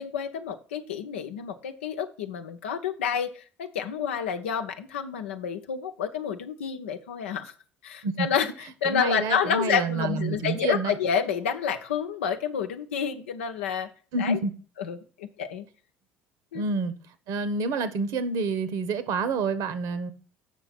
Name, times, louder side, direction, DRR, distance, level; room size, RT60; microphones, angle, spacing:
voice 1, 0.0-7.5 7.8-13.9 14.2-14.4 14.8-15.7 16.5-16.6, left 7 dB, 80° left, 0.8 m, -29 dB
voice 2, 8.8-10.9 14.1-14.5 16.5-16.9 17.3-20.1, right 3 dB, 60° right, 1.1 m, -28 dB
7.5 x 6.0 x 5.9 m
hypercardioid pair, 65°, 7 cm